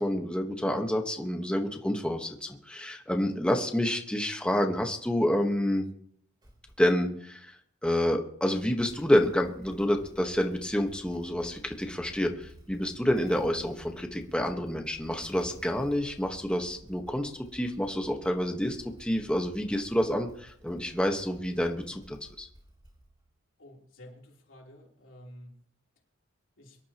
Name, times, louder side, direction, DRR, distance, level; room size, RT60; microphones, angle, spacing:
voice 1, 0.0-5.8 6.8-7.6 7.8-22.5, equal, 5° left, 3 dB, 1.3 m, -28 dB
Motorcycle / Engine starting, 6.4-7.1 8.4-23.3, equal, 25° right, 3.4 m, -53 dB
voice 2, 23.6-25.5 26.6-26.8, equal, 90° left, -1 dB, 3.5 m, -50 dB
24.5 x 12.0 x 3.0 m, 0.66 s
head